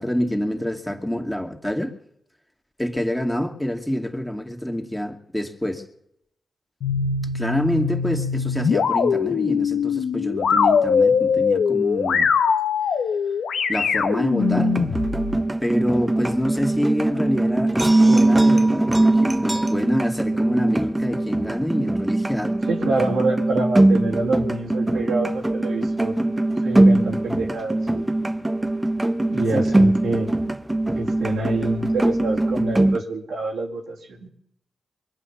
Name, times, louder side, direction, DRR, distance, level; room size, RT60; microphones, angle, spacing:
voice 1, 0.0-2.0 2.8-5.8 7.3-12.3 13.7-14.7 15.6-17.7 18.1-22.5 22.9-23.1 29.5-29.8, equal, 5° left, 2 dB, 2.3 m, -26 dB
sound 1, 6.8-15.4, left 6 dB, 80° left, 0.9 m, -22 dB
sound 2, 14.4-33.0, right 2 dB, 20° right, 0.9 m, -21 dB
voice 2, 22.7-26.3 26.6-28.1 29.3-30.3 30.9-34.3, right 2 dB, 85° right, -2 dB, 2.3 m, -27 dB
22.5 x 8.5 x 7.1 m, 0.75 s
supercardioid pair, 40°, 0 cm